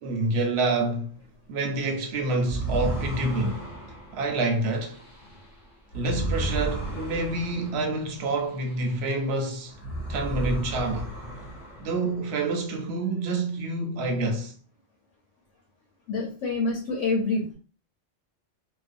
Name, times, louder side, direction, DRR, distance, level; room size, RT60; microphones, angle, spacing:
voice 1, 0.0-1.2 1.5-3.6 4.1-5.0 5.9-9.8 10.1-11.1 11.8-14.5, right 2 dB, 65° right, 0.8 m, -27 dB
sound 1, 2.4-9.3 9.7-12.4, right 1 dB, 30° left, 1.2 m, -34 dB
voice 2, 16.1-17.6, left 3 dB, 85° left, 1.0 m, -27 dB
2.5 x 2.1 x 2.5 m
omnidirectional pair, 1.2 m